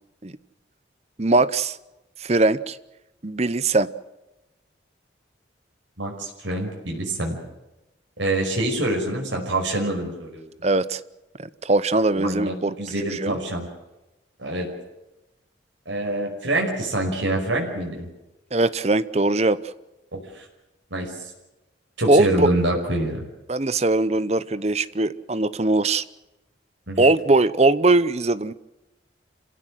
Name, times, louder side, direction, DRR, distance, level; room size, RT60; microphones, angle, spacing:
voice 1, 1.2-1.8 2.2-2.8 3.2-3.9 10.6-11.0 11.4-13.4 18.5-19.6 22.1-22.5 23.5-26.0 27.0-28.5, right 2 dB, 35° right, 16 dB, 0.8 m, -21 dB
voice 2, 6.0-7.4 8.2-10.4 12.2-13.7 14.4-14.7 15.9-18.1 20.1-20.5 20.9-21.3 22.0-23.2 26.9-27.1, right 1 dB, 80° right, 0 dB, 5.5 m, -26 dB
27.5 x 16.5 x 7.8 m, 1.0 s
head